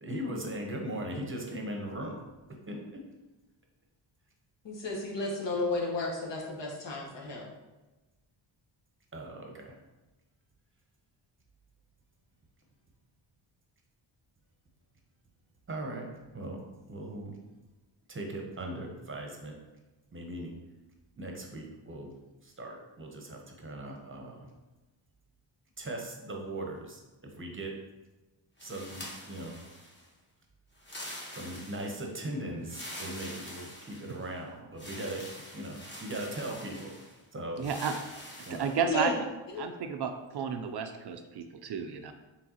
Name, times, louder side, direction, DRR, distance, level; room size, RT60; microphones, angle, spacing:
voice 1, 0.0-2.2 2.7-3.0 9.1-9.7 15.7-16.1 16.3-16.6 16.9-17.3 18.1-19.6 20.1-20.5 21.2-22.1 22.4-24.5 25.8-27.0 27.4-27.7 28.6-29.6 31.3-35.2 35.5-36.9 37.3-37.6 38.4-38.7, right 1 dB, 25° right, 1 dB, 0.8 m, -39 dB
voice 2, 4.6-7.4 38.8-39.1 39.5-39.6, left 3 dB, 60° left, -2 dB, 1.2 m, -33 dB
sound 1, 28.6-30.1 30.8-32.1 32.6-34.3 34.8-37.2 37.6-38.8, left 1 dB, 20° left, 1.2 m, -45 dB
voice 3, 37.6-38.0 38.5-39.1 39.6-42.1, right 6 dB, 55° right, 6 dB, 0.5 m, -32 dB
4.5 x 3.5 x 2.8 m, 1.1 s
cardioid pair, 80°, 48 cm